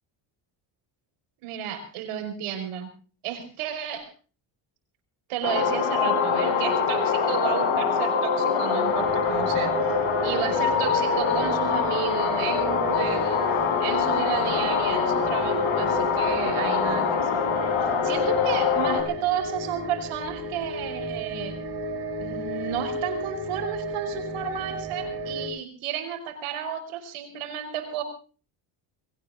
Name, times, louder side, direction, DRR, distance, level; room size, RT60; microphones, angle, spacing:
voice 1, 1.4-2.9 3.2-4.1 5.3-13.4 13.8-17.4 18.0-21.6 22.2-28.0, right 9 dB, 85° right, 7 dB, 5.4 m, -32 dB
sound 1, 5.4-19.0, left 6 dB, 70° left, 5.2 m, -24 dB
sound 2, 8.9-25.5, right 1 dB, 50° right, 7.8 m, -35 dB
22.0 x 17.5 x 3.7 m, 0.38 s
cardioid pair, 105°, 49 cm